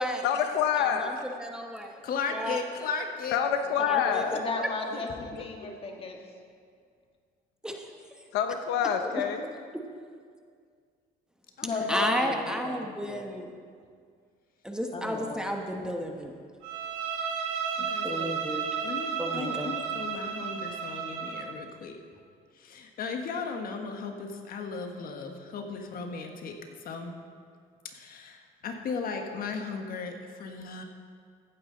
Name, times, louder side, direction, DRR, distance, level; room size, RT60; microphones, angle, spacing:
voice 1, 0.2-1.1 3.3-4.4 8.3-9.5, left 8 dB, 85° left, 7 dB, 0.7 m, -26 dB
voice 2, 0.7-1.1 1.4-1.9 2.3-2.6 3.8-4.2 7.6-7.8 9.0-9.1 11.9-13.5 14.6-16.3 18.0-18.8 19.2-19.8, equal, 5° right, 2 dB, 1.0 m, -32 dB
voice 3, 2.0-3.4 4.2-4.3 5.4-5.5 11.6-11.9 17.8-18.3 18.8-22.0 22.5-27.1 27.8-30.8, left 4 dB, 60° left, 4 dB, 1.3 m, -36 dB
voice 4, 4.3-6.2 11.6-13.3 14.9-15.4 15.7-15.9, left 4 dB, 35° left, 2 dB, 1.8 m, -34 dB
Bowed string instrument, 16.6-21.5, right 6 dB, 90° right, 1.5 m, -33 dB
15.0 x 9.4 x 3.9 m, 2.1 s
cardioid pair, 110°, 17 cm